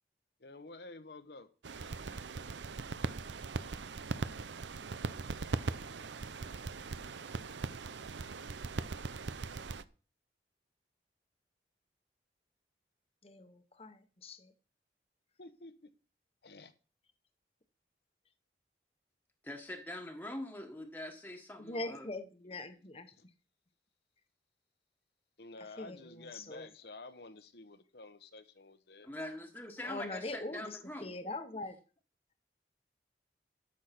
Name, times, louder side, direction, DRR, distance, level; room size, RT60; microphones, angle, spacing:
voice 1, 0.4-1.5 15.4-15.9 16.4-16.7 23.2-23.3 25.4-29.1, left 2 dB, 65° left, 1.0 m, -51 dB
sound 1, 1.6-9.8, right 4 dB, 85° right, 0.6 m, -40 dB
voice 2, 13.2-14.5 21.6-23.1 25.6-26.7 29.8-31.8, left 2 dB, 35° left, 1.0 m, -42 dB
voice 3, 19.4-22.1 29.0-31.1, left 1 dB, 10° left, 1.4 m, -43 dB
13.0 x 6.5 x 5.9 m
head